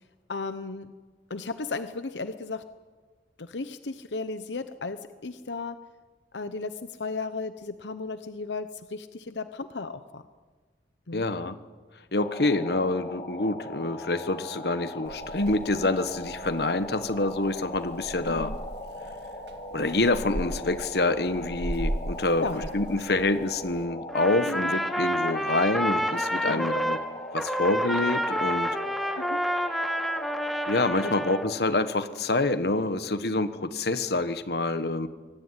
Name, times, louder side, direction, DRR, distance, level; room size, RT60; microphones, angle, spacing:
voice 1, 0.3-0.9 1.3-2.6 3.4-5.8 6.3-10.2 11.1-11.3 18.3-18.6 22.4-22.7 24.5-24.7 26.4-26.7 29.2-29.4 31.0-31.1, left 3 dB, 85° left, 11 dB, 0.9 m, -35 dB
voice 2, 11.1-11.6 12.1-18.5 19.7-27.0 27.3-28.8 30.7-35.1, left 2 dB, 60° left, 12 dB, 1.3 m, -27 dB
sound 1, 12.2-31.6, left 1 dB, 35° left, 3.1 m, -40 dB
Purr / Meow, 15.0-23.8, right 1 dB, 70° right, 1.9 m, -38 dB
Trumpet, 24.1-27.0 27.3-31.5, equal, ahead, 1.5 m, -29 dB
24.0 x 18.0 x 9.8 m, 1.4 s
head